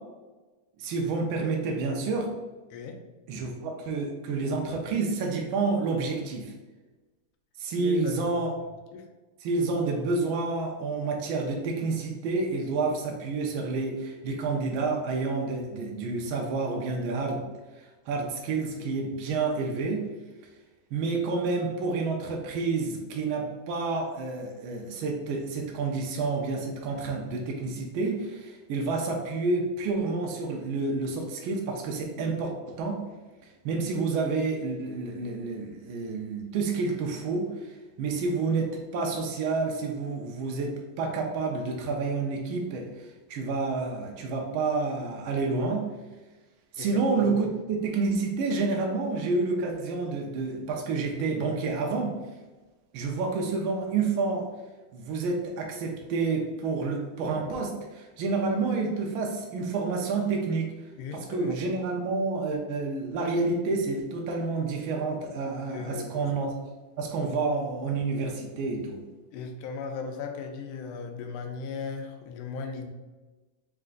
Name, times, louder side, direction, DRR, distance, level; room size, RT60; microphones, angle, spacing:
voice 1, 0.8-2.3 3.3-6.5 7.6-8.5 9.4-17.4 17.8-20.1 20.9-33.0 33.4-45.9 46.7-52.2 52.9-54.5 54.9-66.5 67.0-69.0, right 3 dB, 80° right, 1 dB, 1.4 m, -29 dB
voice 2, 7.8-8.5 8.9-9.1 46.8-47.5 61.0-61.6 65.7-66.3 67.2-67.3 69.3-72.9, left 5 dB, 85° left, 4 dB, 1.5 m, -37 dB
4.3 x 2.4 x 3.7 m, 1.2 s
omnidirectional pair, 2.3 m